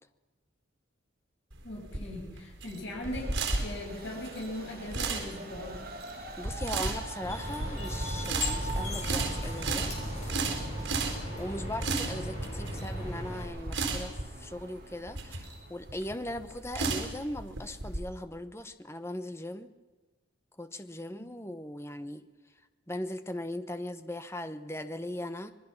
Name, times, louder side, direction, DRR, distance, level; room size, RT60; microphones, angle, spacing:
sound 1, 1.5-18.0, right 3 dB, 75° right, 4.2 m, -34 dB
voice 1, 1.6-3.3 3.6-5.8 21.2-21.3, left 1 dB, 75° left, -2 dB, 7.0 m, -39 dB
Train, 3.0-16.5, right 3 dB, 50° right, 2.7 m, -45 dB
voice 2, 6.4-9.9 10.2-10.3 11.4-19.7 20.6-22.2 22.9-25.5, left 1 dB, 15° left, 10 dB, 0.9 m, -39 dB
sound 2, 7.2-13.4, left 1 dB, 35° left, 6.1 m, -37 dB
26.0 x 20.5 x 6.0 m, 1.2 s
head